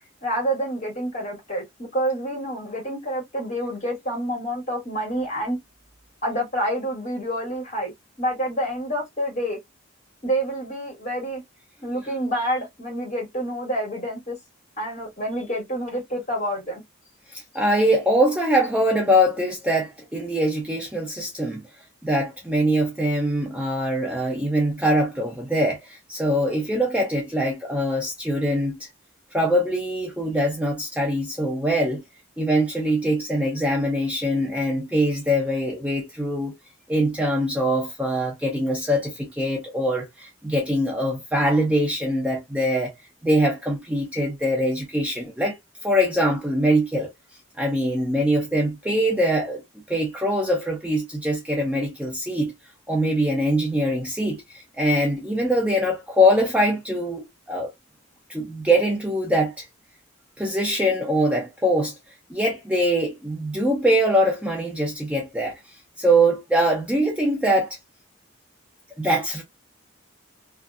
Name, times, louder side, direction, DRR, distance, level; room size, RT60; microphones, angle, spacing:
voice 1, 0.2-5.6 6.2-7.9 8.2-9.6 10.2-11.4 11.8-14.4 14.8-16.8, right 1 dB, 35° left, 1.4 m, -28 dB
voice 2, 17.3-21.6 22.0-28.9 29.3-32.0 32.4-36.5 36.9-42.9 43.2-45.6 45.8-47.1 47.6-49.6 49.9-52.5 52.9-57.7 58.3-59.6 60.4-61.9 62.3-65.6 66.0-67.8 69.0-69.4, equal, 5° right, 0.5 m, -23 dB
2.5 x 2.3 x 2.3 m
head